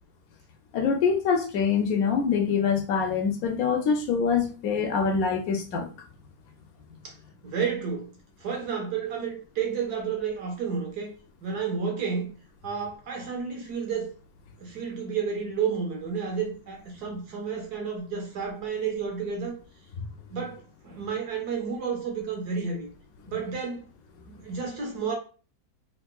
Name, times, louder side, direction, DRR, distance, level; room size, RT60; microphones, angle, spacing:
voice 1, 0.7-5.9, left 6 dB, 70° left, 1.0 m, -25 dB
voice 2, 7.4-8.1 8.4-11.1 11.4-12.3 12.6-14.1 14.6-19.6 20.3-22.9 23.3-23.8 24.3-25.2, right 6 dB, 80° right, 1.6 m, -31 dB
3.5 x 3.0 x 2.2 m
omnidirectional pair, 1.7 m